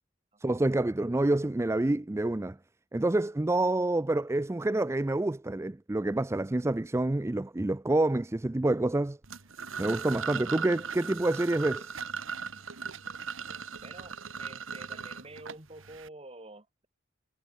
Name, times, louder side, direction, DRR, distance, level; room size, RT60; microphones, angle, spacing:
voice 1, 0.4-2.6 2.9-9.2 9.8-11.9, right 2 dB, 15° right, 0.4 m, -27 dB
sound 1, 9.2-16.1, right 6 dB, 80° right, 1.7 m, -38 dB
voice 2, 13.8-16.9, right 2 dB, 30° right, 3.3 m, -48 dB
head